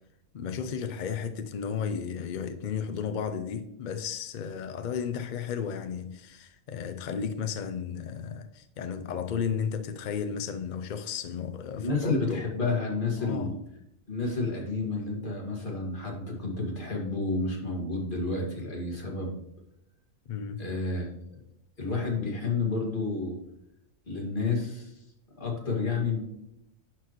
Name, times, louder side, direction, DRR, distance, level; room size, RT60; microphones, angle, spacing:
voice 1, 0.3-12.5 13.2-13.6 20.3-20.6, left 7 dB, 65° left, 0.4 m, -34 dB
voice 2, 11.8-13.5 14.1-19.4 20.6-21.1 21.8-23.4 24.1-24.9 25.4-26.2, left 3 dB, 40° left, 2.0 m, -30 dB
11.5 x 4.5 x 3.0 m
omnidirectional pair, 1.3 m